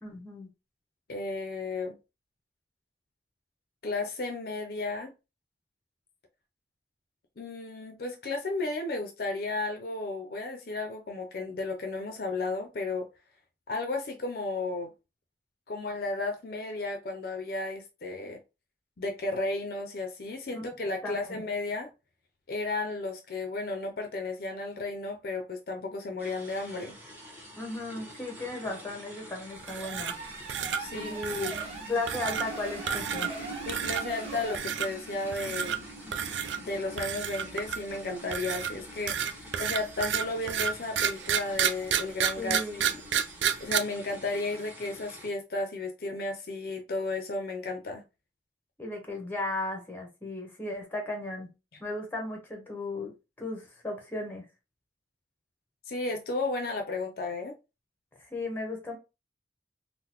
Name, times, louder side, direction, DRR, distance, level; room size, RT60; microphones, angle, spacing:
voice 1, 0.0-0.5 20.5-20.7 21.0-21.4 27.6-30.2 30.9-31.5 31.9-33.3 42.4-42.8 48.8-51.5 51.8-53.1 53.4-54.5 58.2-59.0, left 2 dB, 10° left, 0.8 m, -35 dB
voice 2, 1.1-2.0 3.8-5.1 7.4-13.1 13.7-14.9 15.7-18.4 19.0-21.9 22.5-27.0 30.8-31.2 33.7-35.9 36.6-43.0 43.6-48.0 55.9-57.5, left 2 dB, 55° left, 0.5 m, -33 dB
sound 1, 26.2-45.3, right 1 dB, 10° right, 1.1 m, -45 dB
sound 2, 29.6-30.2 30.5-30.8 31.2-31.7 32.1-32.5 32.9-33.4 33.7-34.0 34.5-34.9 35.3-35.8 36.1-36.6 37.0-37.9 38.3-43.8, right 8 dB, 80° right, 0.3 m, -30 dB
sound 3, 29.7-34.6, right 3 dB, 30° right, 0.9 m, -41 dB
3.7 x 2.0 x 2.9 m
head